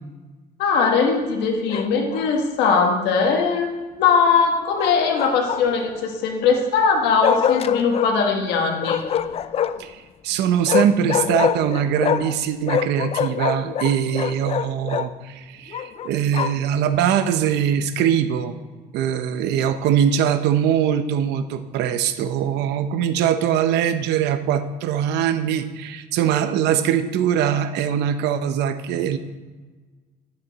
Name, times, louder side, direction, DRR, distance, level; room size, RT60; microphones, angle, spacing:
voice 1, 0.6-9.0, left 5 dB, 90° left, 2 dB, 1.3 m, -20 dB
Bark, 1.7-2.3 4.8-5.9 7.2-8.1 8.8-9.9 10.7-12.4 12.6-15.1 15.7-16.7, left 9 dB, 35° left, 0.3 m, -24 dB
voice 2, 9.8-18.6 18.9-29.2, right 9 dB, 85° right, 10 dB, 0.7 m, -22 dB
10.0 x 7.1 x 4.0 m, 1.3 s
cardioid pair, 110°, 17 cm